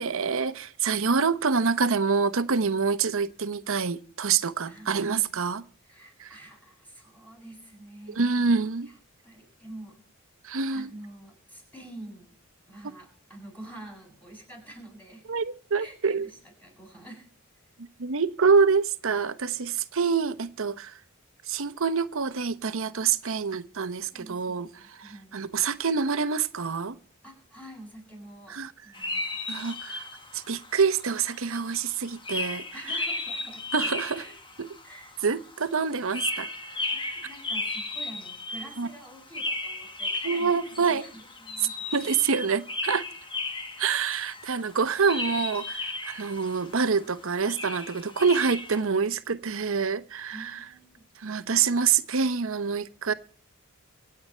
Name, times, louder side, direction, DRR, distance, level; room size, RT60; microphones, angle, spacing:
voice 1, 0.0-5.6 6.2-6.4 8.1-8.9 10.4-10.9 15.3-16.3 18.0-21.0 21.5-24.7 25.0-27.0 28.5-28.7 29.5-30.1 30.3-32.6 33.7-34.2 34.6-34.7 35.2-36.5 38.8-38.9 40.2-41.0 41.9-43.0 43.8-50.6 51.2-53.1, right 5 dB, 70° right, 0.9 m, -26 dB
voice 2, 4.6-5.1 5.9-8.2 8.9-9.0 9.2-10.0 10.7-12.4 12.7-15.3 15.7-17.3 24.1-25.4 27.2-29.3 32.7-34.4 34.8-35.1 36.6-42.1 50.3-51.1, right 1 dB, 10° left, 7.9 m, -47 dB
sound 1, 28.9-48.8, left 2 dB, 25° left, 1.4 m, -35 dB
25.5 x 8.7 x 4.4 m
head